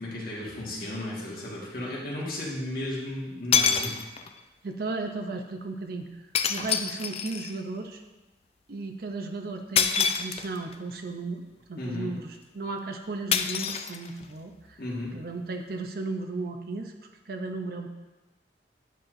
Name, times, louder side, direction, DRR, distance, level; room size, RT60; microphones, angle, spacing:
voice 1, 0.0-4.0 11.8-12.1 14.8-15.1, left 1 dB, 55° left, -5 dB, 1.8 m, -34 dB
sound 1, 0.8-0.9 3.0-3.1 3.5-4.4 6.4-7.6 9.8-10.8 13.3-14.4, left 7 dB, 35° left, 0.3 m, -26 dB
voice 2, 4.6-6.1 6.5-8.0 8.7-11.4 11.7-12.3 12.5-14.8 15.1-16.9 17.3-17.9, right 3 dB, 60° right, 4 dB, 0.6 m, -35 dB
9.3 x 5.6 x 2.6 m, 1.1 s
head